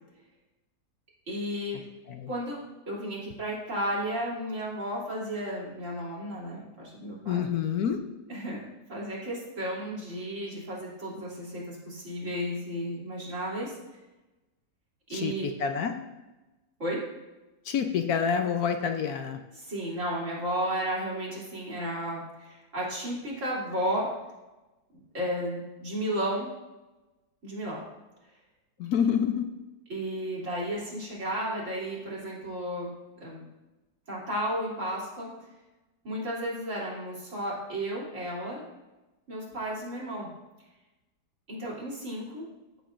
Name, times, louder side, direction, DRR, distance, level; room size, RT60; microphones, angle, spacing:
voice 1, 1.3-1.9 2.3-2.6 2.9-7.4 8.3-8.6 8.9-13.8 15.1-15.5 16.8-17.1 19.6-24.1 25.1-26.5 27.4-27.8 29.9-32.9 33.2-33.4 34.1-35.3 36.0-38.6 39.3-40.3 41.5-42.5, equal, 45° right, -6 dB, 3.3 m, -33 dB
voice 2, 7.3-8.0 15.1-15.9 17.6-19.4 28.8-29.4, left 7 dB, 70° left, 6 dB, 1.1 m, -27 dB
14.5 x 7.2 x 2.5 m, 1.1 s
omnidirectional pair, 1.8 m